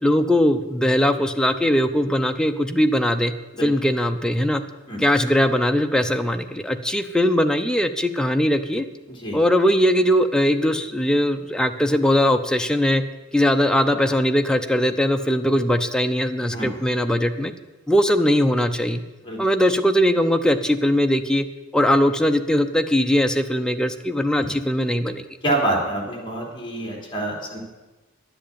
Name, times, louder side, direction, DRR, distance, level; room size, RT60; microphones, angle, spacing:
voice 1, 0.0-3.3 3.6-4.6 5.0-8.8 9.3-13.0 13.3-17.5 17.9-19.0 19.4-21.5 21.7-25.2, equal, 5° left, 7 dB, 0.6 m, -20 dB
voice 2, 25.4-27.6, right 1 dB, 25° left, -2 dB, 3.5 m, -26 dB
11.5 x 7.8 x 8.7 m, 1.2 s
head